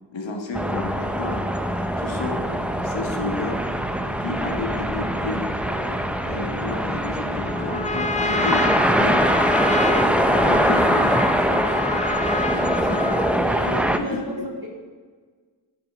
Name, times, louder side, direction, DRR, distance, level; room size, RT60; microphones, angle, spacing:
voice 1, 0.1-1.4 2.0-2.4 2.8-3.6 4.2-5.5 6.2-9.2 10.2-11.8 12.6-13.1 13.6-14.5, left 3 dB, 85° left, 2 dB, 1.9 m, -31 dB
sound 1, 0.5-14.0, equal, 5° right, 1.0 m, -23 dB
Trumpet, 7.5-13.4, left 3 dB, 15° left, 0.6 m, -28 dB
voice 2, 12.2-12.8 13.4-14.7, right 1 dB, 55° right, -2 dB, 4.0 m, -35 dB
12.5 x 6.7 x 6.6 m, 1.5 s
cardioid pair, 45°, 44 cm